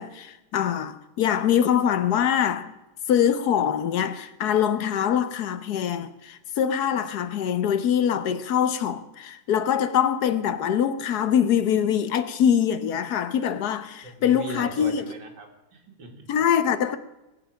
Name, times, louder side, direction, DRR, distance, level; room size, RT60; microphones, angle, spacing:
voice 1, 0.0-2.7 3.1-15.0 16.3-17.0, left 9 dB, 70° left, 1.3 m, -23 dB
voice 2, 14.0-16.3, right 2 dB, 85° right, 2.6 m, -38 dB
19.0 x 8.1 x 6.2 m
omnidirectional pair, 1.8 m